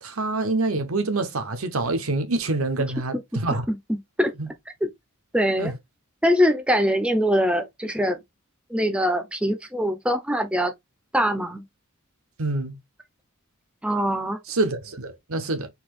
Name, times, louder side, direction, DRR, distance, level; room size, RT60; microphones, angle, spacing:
voice 1, 0.0-3.6 4.4-4.5 5.6-5.7 12.4-12.8 14.5-15.7, right 2 dB, 75° right, 1.1 m, -26 dB
voice 2, 3.7-4.3 5.3-5.7 6.2-8.2 8.7-10.7 11.1-11.6 13.8-14.4, equal, 5° right, 0.6 m, -23 dB
4.3 x 2.8 x 4.2 m
head